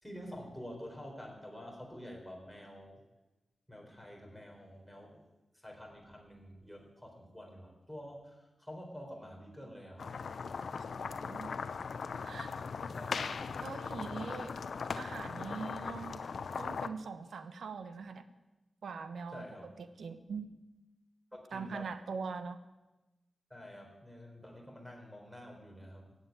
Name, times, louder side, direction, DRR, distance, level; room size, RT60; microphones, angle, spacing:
voice 1, 0.0-3.0 3.7-5.2 5.5-10.1 12.9-13.9 14.3-14.4 19.3-19.7 21.3-21.9 23.5-26.2, equal, ahead, 1 dB, 4.2 m, -48 dB
sound 1, 10.0-16.9, left 5 dB, 75° left, 0.7 m, -39 dB
voice 2, 10.8-11.5 12.2-12.6 13.6-14.5 15.0-16.2 16.6-18.2 18.8-20.5 21.5-22.6, right 5 dB, 90° right, 10 dB, 1.2 m, -42 dB
16.5 x 7.9 x 9.4 m, 1.1 s
wide cardioid pair, 85°, 0 cm